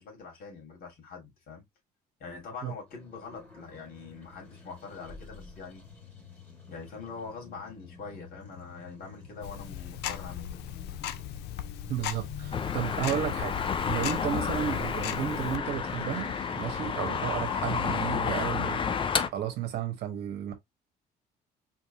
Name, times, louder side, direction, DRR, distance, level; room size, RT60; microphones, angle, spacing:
voice 1, 0.0-1.6 2.2-5.8 6.7-10.6, left 4 dB, 60° left, 2.5 m, -44 dB
sound 1, 2.9-18.2, left 4 dB, 10° left, 2.0 m, -50 dB
Tick-tock, 9.4-15.6, left 10 dB, 80° left, 0.5 m, -38 dB
voice 2, 11.9-13.6 13.9-18.8 19.3-20.5, right 10 dB, 75° right, 1.1 m, -33 dB
sound 2, 12.5-19.3, left 6 dB, 30° left, 0.5 m, -30 dB
4.3 x 2.7 x 2.8 m
cardioid pair, 110°, 17 cm